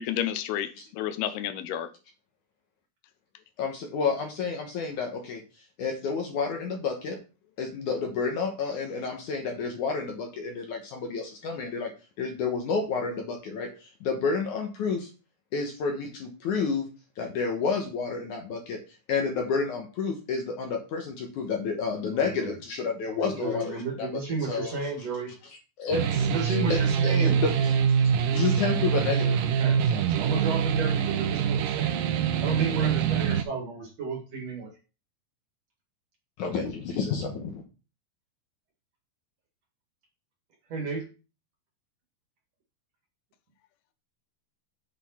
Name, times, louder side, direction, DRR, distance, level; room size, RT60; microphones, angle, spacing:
voice 1, 0.0-1.9, left 10 dB, 85° left, 2.8 m, -31 dB
voice 2, 3.6-5.4 5.8-7.2 7.6-11.9 12.2-15.1 15.5-16.9 17.2-18.8 19.1-24.1 24.4-24.9 25.8-28.0 28.3-29.4 29.8-30.3 36.4-37.6, left 5 dB, 65° left, 2.2 m, -30 dB
voice 3, 22.1-22.5 23.1-25.3 26.2-27.4 29.6-29.8 30.2-32.0 32.4-34.7 40.7-41.0, right 4 dB, 50° right, 2.5 m, -32 dB
sound 1, 25.9-33.4, right 7 dB, 75° right, 2.2 m, -25 dB
8.1 x 5.3 x 4.2 m
omnidirectional pair, 4.5 m